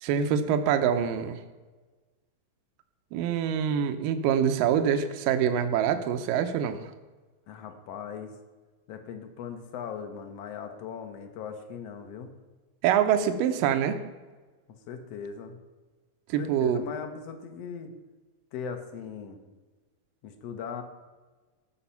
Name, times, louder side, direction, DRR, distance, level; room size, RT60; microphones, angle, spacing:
voice 1, 0.0-1.4 3.1-6.8 12.8-14.0 16.3-16.8, right 8 dB, 80° right, 8 dB, 2.5 m, -25 dB
voice 2, 7.5-8.3 8.9-12.3 14.9-15.6 16.4-17.9 18.5-19.4 20.2-20.8, left 6 dB, 60° left, 7 dB, 1.8 m, -39 dB
17.0 x 6.4 x 5.7 m, 1.3 s
omnidirectional pair, 4.0 m